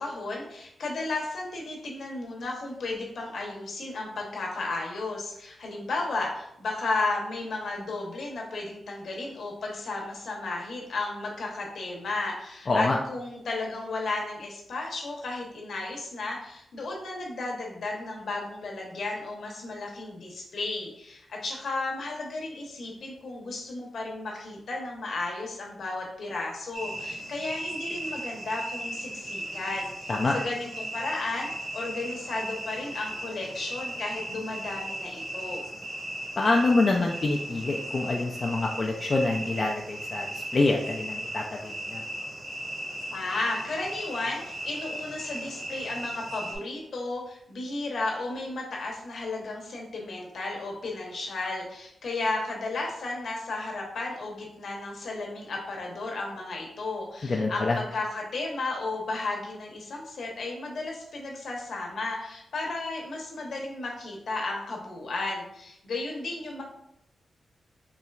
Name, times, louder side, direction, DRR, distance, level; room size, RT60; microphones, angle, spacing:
voice 1, 0.0-35.6 43.1-66.6, left 2 dB, 70° left, -1 dB, 0.9 m, -34 dB
voice 2, 12.7-13.0 30.1-30.4 36.4-42.0 57.2-57.8, left 3 dB, 40° left, 0 dB, 0.3 m, -26 dB
sound 1, 26.7-46.6, right 1 dB, 70° right, 1.2 m, -37 dB
4.3 x 2.9 x 2.3 m, 0.78 s
wide cardioid pair, 105°, 0 cm